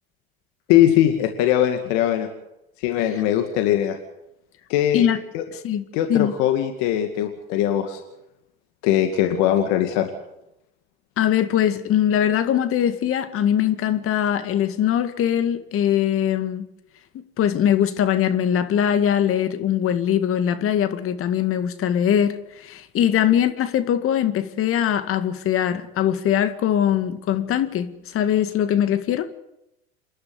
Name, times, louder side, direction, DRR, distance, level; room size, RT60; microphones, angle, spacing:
voice 1, 0.7-2.3 2.8-4.0 4.7-5.1 5.3-5.4 5.9-8.0 8.8-10.1, left 11 dB, 65° left, 2.3 m, -20 dB
voice 2, 5.5-5.8 6.1-6.3 11.2-16.7 17.4-29.3, left 10 dB, 45° left, 2.1 m, -21 dB
28.0 x 11.5 x 9.5 m
hypercardioid pair, 80°, 30 cm